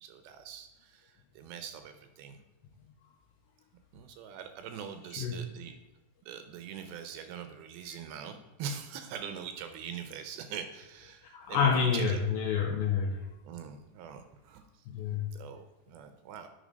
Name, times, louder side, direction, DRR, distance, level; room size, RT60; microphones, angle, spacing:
voice 1, 0.0-2.4 3.9-5.7 6.3-12.2 13.5-14.6 15.3-16.5, right 7 dB, 80° right, 8 dB, 2.4 m, -43 dB
voice 2, 11.3-13.2 14.9-15.3, left 6 dB, 85° left, 2 dB, 2.1 m, -28 dB
10.0 x 4.0 x 5.1 m, 0.96 s
omnidirectional pair, 4.7 m